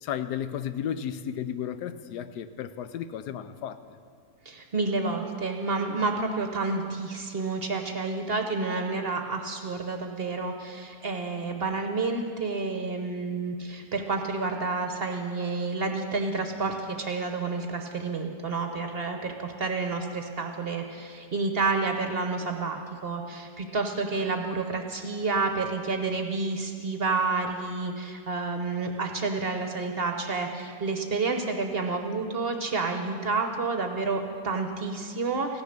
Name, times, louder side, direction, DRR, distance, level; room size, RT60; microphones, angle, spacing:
voice 1, 0.0-3.8, left 9 dB, 85° left, 11 dB, 1.2 m, -33 dB
voice 2, 4.4-35.6, right 3 dB, 45° right, 5 dB, 0.9 m, -29 dB
15.5 x 10.0 x 6.5 m, 2.2 s
omnidirectional pair, 1.7 m